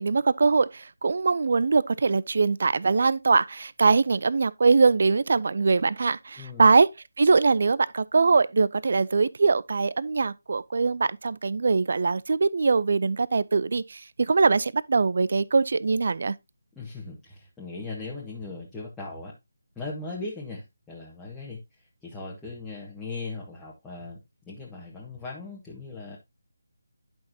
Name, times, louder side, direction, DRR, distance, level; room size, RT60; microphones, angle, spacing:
voice 1, 0.0-6.9 7.2-16.3, right 4 dB, 45° right, 0.5 m, -22 dB
voice 2, 6.4-6.7 16.7-19.3 19.7-26.2, left 3 dB, 5° left, 1.5 m, -38 dB
11.0 x 6.1 x 2.8 m
figure-of-eight pair, 155°, 0 cm